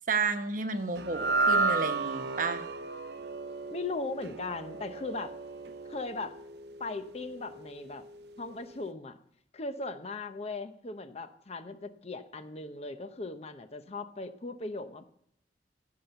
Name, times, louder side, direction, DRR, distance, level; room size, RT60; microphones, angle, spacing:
voice 1, 0.1-2.7, right 4 dB, 50° right, 8 dB, 1.1 m, -31 dB
sound 1, 1.0-7.4, right 3 dB, 65° right, 0.8 m, -32 dB
voice 2, 3.7-5.3 5.9-6.3 6.8-8.0 8.4-9.2 9.5-15.0, left 3 dB, 35° left, 10 dB, 0.8 m, -38 dB
15.5 x 5.8 x 6.9 m, 0.73 s
head